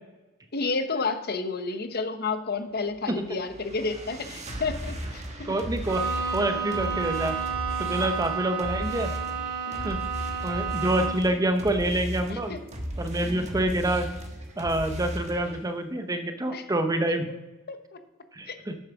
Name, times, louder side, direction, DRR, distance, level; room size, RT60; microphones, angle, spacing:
voice 1, 0.5-5.5 7.9-8.2 9.7-10.1 12.3-12.6 16.5-16.6 17.7-18.0 18.5-18.6, left 4 dB, 50° left, 9 dB, 0.9 m, -31 dB
sound 1, 2.9-15.6, equal, 35° right, 1.3 m, -36 dB
voice 2, 5.4-6.0 6.3-7.4 7.8-9.1 9.8-10.0 10.4-12.5 13.0-14.1 14.6-17.3 18.3-18.7, right 1 dB, 15° right, 7 dB, 0.7 m, -27 dB
Bowed string instrument, 5.9-11.4, right 6 dB, 80° right, 2.8 m, -31 dB
sound 2, 11.4-15.5, right 1 dB, 60° right, 1.8 m, -48 dB
8.3 x 7.2 x 6.0 m, 1.1 s
head